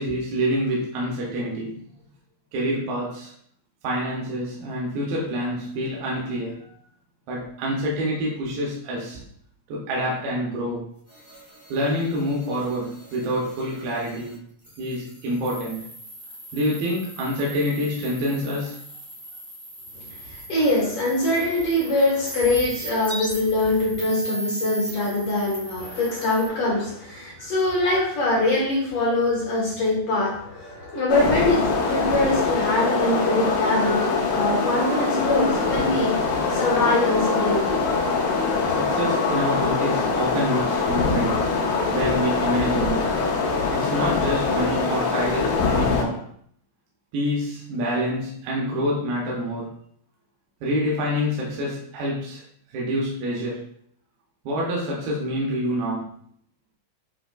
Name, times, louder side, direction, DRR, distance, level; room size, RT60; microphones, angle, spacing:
voice 1, 0.0-1.8 2.5-3.3 3.8-6.7 7.3-9.2 9.7-10.9 11.7-14.4 14.8-15.9 16.5-18.8 27.4-27.5 38.7-41.5 41.9-43.1 43.7-46.2 47.1-49.7 50.6-52.4 52.7-53.7 54.4-56.1, equal, 80° right, -4 dB, 2.6 m, -27 dB
sound 1, 11.1-14.3 14.6-26.5, right 2 dB, 45° right, 0.3 m, -38 dB
voice 2, 19.9-36.2 36.5-38.7, left 2 dB, 55° left, -5 dB, 1.6 m, -23 dB
sound 2, 31.1-46.0, left 4 dB, 80° left, 2.3 m, -23 dB
7.8 x 2.8 x 2.3 m, 0.65 s
omnidirectional pair, 4.2 m